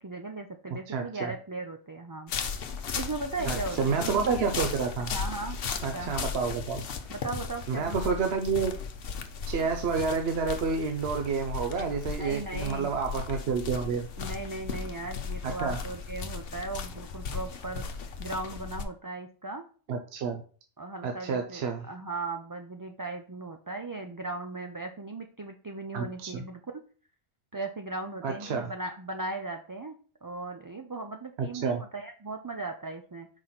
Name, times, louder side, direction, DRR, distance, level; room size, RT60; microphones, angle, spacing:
voice 1, 0.0-2.3 2.9-4.4 5.1-5.6 5.9-6.1 7.1-8.2 12.2-12.9 14.2-17.8 18.2-19.7 20.8-26.8 27.5-33.3, right 3 dB, 30° right, 4 dB, 0.3 m, -37 dB
voice 2, 0.9-1.3 3.4-5.1 5.8-6.8 7.7-8.7 9.5-14.1 15.4-15.8 19.9-20.4 21.0-21.9 25.9-26.4 28.2-28.7 31.6-31.8, right 5 dB, 75° right, 4 dB, 0.9 m, -29 dB
sound 1, 2.3-18.8, left 5 dB, 65° left, 0.9 m, -36 dB
4.9 x 4.1 x 5.7 m, 0.41 s
omnidirectional pair, 1.1 m